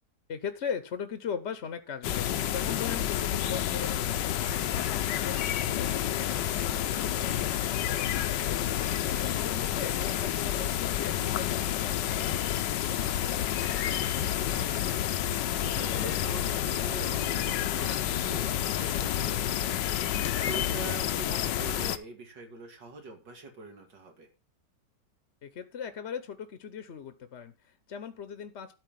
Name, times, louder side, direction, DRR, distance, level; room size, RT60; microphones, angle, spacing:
voice 1, 0.3-12.7 25.4-28.7, left 7 dB, 50° left, 11 dB, 0.9 m, -39 dB
sound 1, 2.0-22.0, left 11 dB, 90° left, 1.4 m, -29 dB
voice 2, 14.2-14.8 15.4-24.3, right 3 dB, 85° right, 4 dB, 3.0 m, -44 dB
12.5 x 4.4 x 7.4 m, 0.33 s
omnidirectional pair, 1.8 m